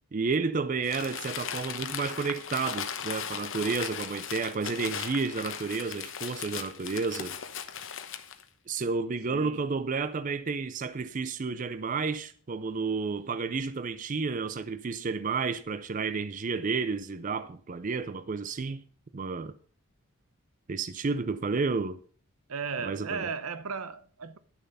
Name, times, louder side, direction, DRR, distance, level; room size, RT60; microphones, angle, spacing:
voice 1, 0.1-7.4 8.7-18.8 19.1-19.5 20.7-22.0 22.8-23.3, right 4 dB, 35° right, 0.4 m, -31 dB
Crumpling crinkling, 0.8-8.4, left 8 dB, 60° left, 1.0 m, -37 dB
voice 2, 9.3-9.7 22.5-24.4, right 5 dB, 85° right, 0.8 m, -35 dB
11.0 x 6.8 x 5.4 m
head